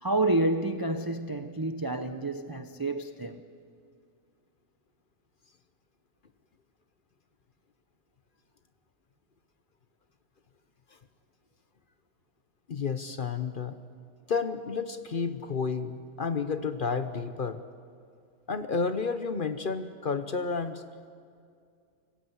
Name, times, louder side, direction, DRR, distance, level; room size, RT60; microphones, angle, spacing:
voice 1, 0.0-3.4, right 2 dB, 35° right, 0.3 m, -29 dB
voice 2, 12.7-13.8 14.3-17.6 18.5-20.8, left 5 dB, 45° left, 0.8 m, -31 dB
25.5 x 15.5 x 8.0 m
omnidirectional pair, 1.5 m